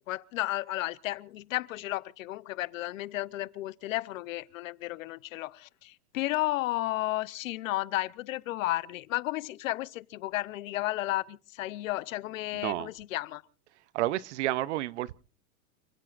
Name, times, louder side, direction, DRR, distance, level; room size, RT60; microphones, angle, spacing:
voice 1, 0.1-13.4, left 17 dB, 65° left, 0.8 m, -33 dB
voice 2, 13.9-15.1, right 15 dB, 55° right, 0.6 m, -30 dB
29.0 x 16.5 x 2.5 m
supercardioid pair, 170°, 43 cm